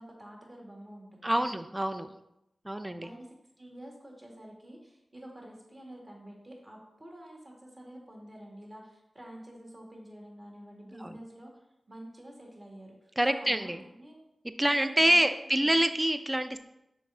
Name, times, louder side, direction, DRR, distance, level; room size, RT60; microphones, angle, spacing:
voice 1, 0.0-1.5 3.0-11.5 11.9-14.2 14.8-15.8, right 1 dB, 30° right, -1 dB, 2.0 m, -48 dB
voice 2, 1.2-2.1 2.6-3.1 11.0-11.1 13.2-13.8 14.6-16.6, right 1 dB, 15° right, 9 dB, 0.5 m, -26 dB
5.2 x 4.4 x 4.9 m, 0.88 s
cardioid pair, 55°, 0 cm